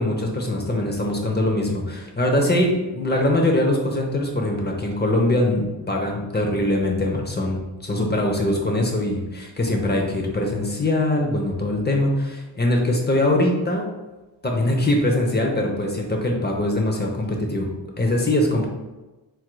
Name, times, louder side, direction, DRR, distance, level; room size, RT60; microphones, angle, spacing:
voice 1, 0.0-13.8 14.4-17.7 18.0-18.6, left 1 dB, 20° left, 0 dB, 0.7 m, -22 dB
4.6 x 4.4 x 2.2 m, 1.1 s
wide cardioid pair, 130°, 47 cm